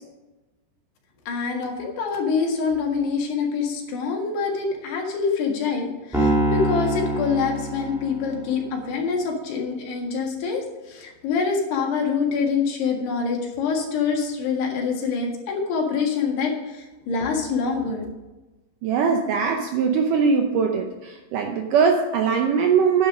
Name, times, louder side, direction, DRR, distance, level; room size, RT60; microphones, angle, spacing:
voice 1, 1.3-18.1, left 5 dB, 80° left, 1 dB, 4.0 m, -25 dB
Piano, 6.1-8.6, right 1 dB, ahead, 1.8 m, -24 dB
voice 2, 18.8-23.1, right 6 dB, 75° right, 3 dB, 2.0 m, -21 dB
9.6 x 9.3 x 5.0 m, 1.1 s
omnidirectional pair, 4.7 m